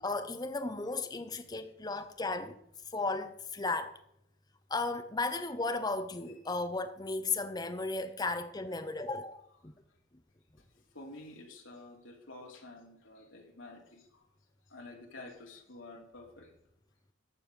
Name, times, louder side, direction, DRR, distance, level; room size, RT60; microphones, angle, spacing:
voice 1, 0.0-2.6 2.9-4.0 4.7-9.7, left 3 dB, 20° left, 0.7 m, -35 dB
voice 2, 10.9-14.2 14.7-16.5, left 2 dB, 75° left, 2.8 m, -50 dB
14.0 x 5.4 x 6.5 m
head